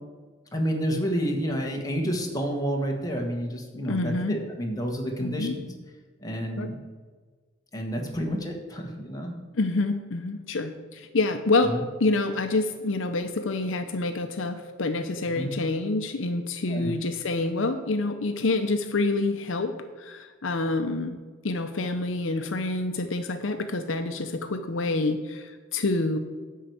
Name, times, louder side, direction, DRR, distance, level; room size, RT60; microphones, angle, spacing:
voice 1, 0.5-5.7 6.2-6.8 7.7-9.3 11.6-11.8 15.3-15.5 16.7-16.9, equal, 20° left, 1 dB, 1.4 m, -29 dB
voice 2, 3.9-4.4 5.2-5.5 6.6-6.7 9.5-11.7 12.0-21.2 21.4-26.2, left 2 dB, 70° left, 8 dB, 0.7 m, -27 dB
10.0 x 4.7 x 7.9 m, 1.4 s
head